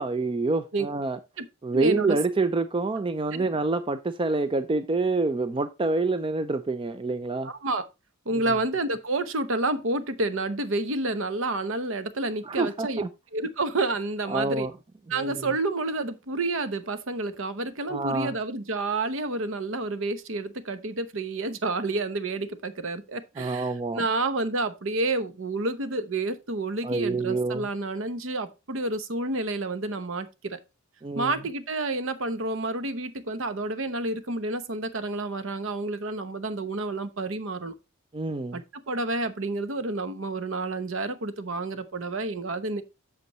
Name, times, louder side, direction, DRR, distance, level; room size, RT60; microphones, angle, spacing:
voice 1, 0.0-1.2 1.6-7.5 8.3-8.4 12.4-13.1 14.3-14.7 15.1-15.5 17.9-18.3 23.4-24.0 26.8-27.7 31.0-31.3 38.1-38.6, right 3 dB, 25° right, 0.4 m, -27 dB
voice 2, 1.7-2.2 3.3-3.4 7.4-7.8 8.3-13.0 13.3-14.7 15.1-30.6 31.1-37.7 38.5-42.8, right 2 dB, 65° right, 0.9 m, -29 dB
8.1 x 6.8 x 3.0 m
head